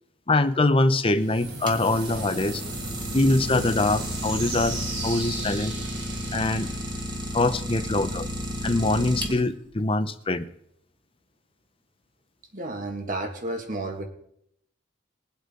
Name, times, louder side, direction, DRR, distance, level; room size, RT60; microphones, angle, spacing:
voice 1, 0.3-2.6 3.1-4.8 5.0-5.7 6.3-6.7 7.3-8.3 8.6-10.4, left 2 dB, 30° left, 11 dB, 0.8 m, -23 dB
sound 1, 1.1-7.9, right 2 dB, 85° right, 3.9 m, -36 dB
Idling, 1.4-9.7, equal, 25° right, 1.6 m, -33 dB
voice 2, 12.5-14.0, right 2 dB, 45° right, 4 dB, 2.0 m, -31 dB
21.0 x 8.2 x 3.9 m, 0.72 s
head